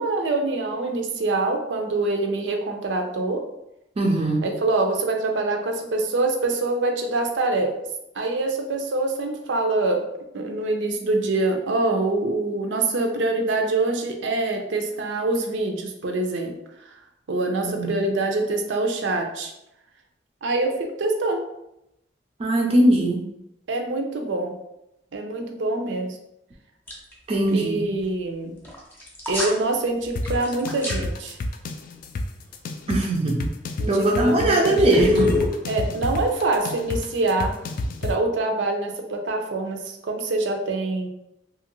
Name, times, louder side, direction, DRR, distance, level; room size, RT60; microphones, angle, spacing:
voice 1, 0.0-3.4 4.4-7.8 8.1-10.0 10.3-16.5 16.9-17.0 17.3-19.5 20.4-21.4 23.7-24.6 25.1-26.2 27.5-28.5 29.3-31.4 33.8-35.0 35.7-37.6 38.0-41.1, right 2 dB, 90° right, 3 dB, 0.5 m, -25 dB
voice 2, 4.0-4.4 17.6-18.0 22.4-23.2 27.3-27.9 32.9-33.5 33.9-35.3, right 1 dB, 30° right, -1 dB, 0.4 m, -20 dB
sound 1, 26.9-27.1 27.4-27.5 28.6-29.6 30.0-31.0 33.7-33.9 34.9-37.8, left 2 dB, 10° left, 0.7 m, -26 dB
sound 2, 30.2-38.2, left 2 dB, 50° left, 0.3 m, -30 dB
2.9 x 2.4 x 2.9 m, 0.85 s
head